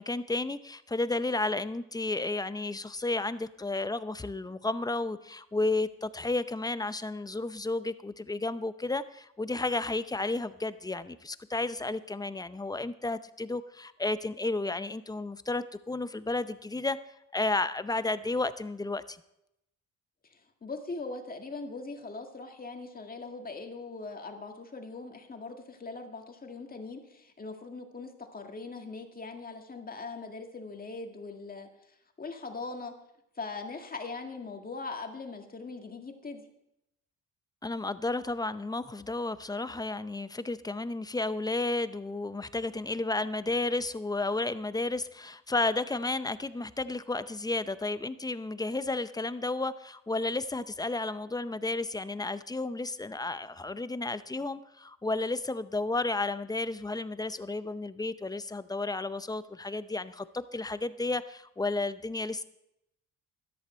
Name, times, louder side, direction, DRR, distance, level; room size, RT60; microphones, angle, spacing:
voice 1, 0.0-17.0 17.3-19.2 37.6-62.4, left 2 dB, 15° left, 13 dB, 0.6 m, -32 dB
voice 2, 20.3-31.7 32.2-32.9 33.4-36.4, left 3 dB, 30° left, 4 dB, 1.9 m, -41 dB
13.5 x 11.5 x 4.4 m, 0.81 s
cardioid pair, 90°, 30 cm